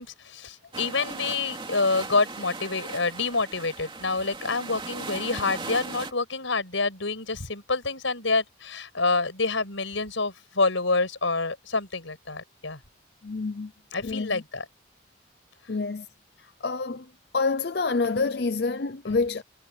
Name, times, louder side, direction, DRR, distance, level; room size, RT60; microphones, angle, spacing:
voice 1, 0.0-12.8 13.9-14.6, left 3 dB, 90° left, 6.1 m, -27 dB
sound 1, 0.7-6.1, right 3 dB, 25° right, 2.7 m, -38 dB
voice 2, 13.2-13.7 14.0-14.4 15.7-16.1 16.4-17.1 17.3-19.4, left 4 dB, 55° left, 0.6 m, -27 dB
head